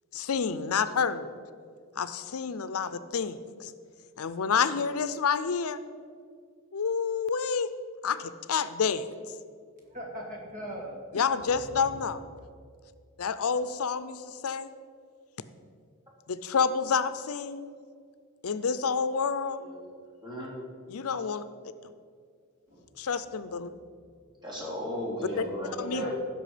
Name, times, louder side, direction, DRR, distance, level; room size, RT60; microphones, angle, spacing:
voice 1, 0.1-1.3 2.0-3.7 4.2-5.8 6.7-7.7 8.0-9.1 11.1-12.2 13.2-14.7 16.3-17.7 18.4-19.6 20.9-21.4 21.8-21.9 23.0-23.7 25.4-25.5 25.8-26.1, left 6 dB, 85° left, 13 dB, 0.5 m, -29 dB
voice 2, 9.9-11.2 11.7-11.9 22.7-22.9 25.8-26.1, equal, 40° right, -1 dB, 2.4 m, -40 dB
voice 3, 20.2-20.6 24.4-26.1, equal, 20° right, -4 dB, 3.1 m, -35 dB
15.5 x 6.2 x 5.0 m, 2.2 s
head